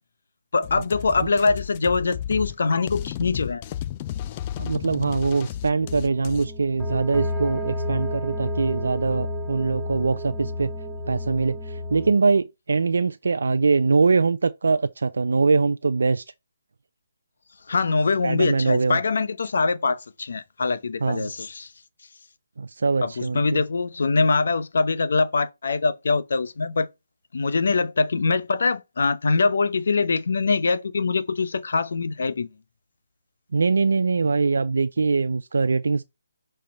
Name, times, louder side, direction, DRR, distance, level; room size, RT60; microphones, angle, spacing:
voice 1, 0.5-3.6 17.7-21.7 23.0-26.9 27.3-32.5, left 4 dB, 65° left, 0.8 m, -23 dB
sound 1, 0.6-6.5, left 11 dB, 25° left, 0.4 m, -33 dB
voice 2, 4.6-10.7 11.1-16.2 18.2-19.0 21.0-21.3 22.6-23.6 33.5-36.0, right 4 dB, 75° right, 0.4 m, -22 dB
sound 2, 5.8-12.1, left 1 dB, ahead, 1.4 m, -31 dB
5.7 x 3.3 x 5.3 m
hypercardioid pair, 155°, 0 cm